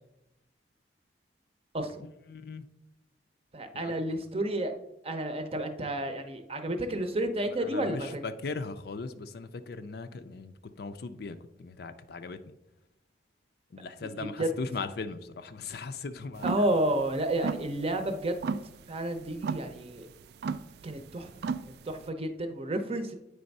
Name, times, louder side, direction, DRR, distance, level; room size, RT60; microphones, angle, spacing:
voice 1, 2.3-2.6 3.7-3.9 7.5-12.6 13.7-16.7 21.4-21.6, left 4 dB, 60° left, 10 dB, 0.5 m, -39 dB
voice 2, 3.5-4.7 5.0-8.2 14.4-14.5 16.4-18.5 18.9-20.1 20.8-21.3 21.6-23.2, right 1 dB, 35° right, 7 dB, 0.7 m, -31 dB
sound 1, 16.4-22.1, right 5 dB, 60° right, 0.3 m, -36 dB
8.7 x 3.4 x 5.3 m, 0.90 s
head